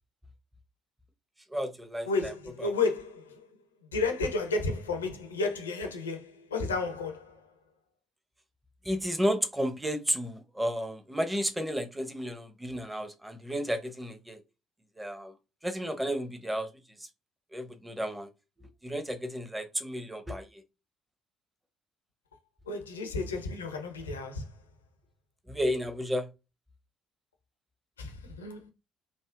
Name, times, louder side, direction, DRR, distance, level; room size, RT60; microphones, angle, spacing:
voice 1, 1.5-2.3 2.6-2.7 8.8-14.4 15.0-15.3 15.6-16.7 17.5-18.3 18.8-20.6 25.5-26.3, equal, 10° right, 0.7 m, -32 dB
voice 2, 2.1-3.5 3.9-7.4 22.7-24.5 28.0-28.7, left 3 dB, 80° left, 0.4 m, -32 dB
3.5 x 2.0 x 2.4 m
figure-of-eight pair, 50°, 0 cm